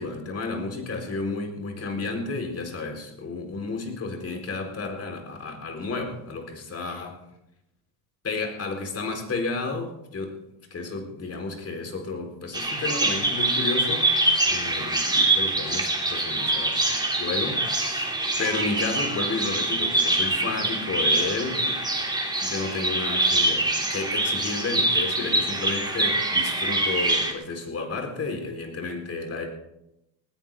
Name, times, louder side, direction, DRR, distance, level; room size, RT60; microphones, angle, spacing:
voice 1, 0.0-7.2 8.2-10.4 10.7-14.1 14.4-18.1 18.4-21.8 22.4-29.5, left 3 dB, 30° left, 3 dB, 4.3 m, -32 dB
Bird vocalization bird call bird song, 12.5-27.3, right 2 dB, 10° right, 3.3 m, -24 dB
19.5 x 15.0 x 3.8 m, 0.85 s
supercardioid pair, 105°, 46 cm